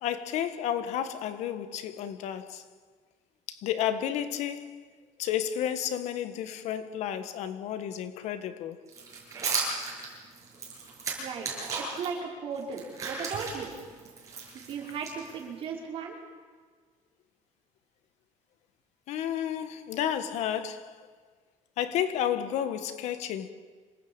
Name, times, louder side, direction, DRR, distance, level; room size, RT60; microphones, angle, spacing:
voice 1, 0.0-2.6 3.5-4.8 5.2-8.8 19.1-21.1 21.8-23.5, left 10 dB, 60° left, 1.6 m, -31 dB
sound 1, 8.9-12.1 12.5-15.6, right 4 dB, 25° right, 7.8 m, -35 dB
voice 2, 11.2-11.5 11.8-13.7 14.5-16.2, right 6 dB, 45° right, 5.3 m, -36 dB
27.0 x 19.0 x 9.0 m
cardioid pair, 165°, 13 cm